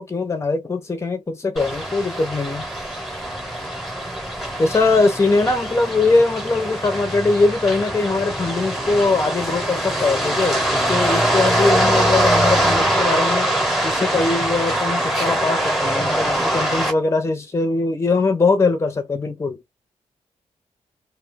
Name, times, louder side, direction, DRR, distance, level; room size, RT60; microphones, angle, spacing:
voice 1, 0.0-2.7 4.6-13.5 13.8-19.6, left 3 dB, 20° left, 0.7 m, -21 dB
sound 1, 1.6-16.9, right 1 dB, ahead, 1.0 m, -22 dB
2.4 x 2.2 x 3.4 m
wide cardioid pair, 140°, 13 cm